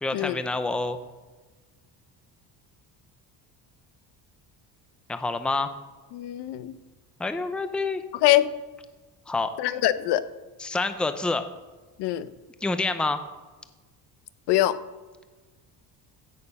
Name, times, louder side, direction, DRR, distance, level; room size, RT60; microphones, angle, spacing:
voice 1, 0.0-1.0 5.1-5.7 7.2-8.0 9.3-9.5 10.6-11.4 12.6-13.2, left 3 dB, ahead, 9 dB, 0.6 m, -27 dB
voice 2, 6.1-6.7 8.2-8.5 9.6-10.2 12.0-12.3 14.5-14.8, left 14 dB, 75° left, 14 dB, 0.8 m, -23 dB
16.0 x 6.6 x 5.4 m, 1.3 s
cardioid pair, 145°, 40 cm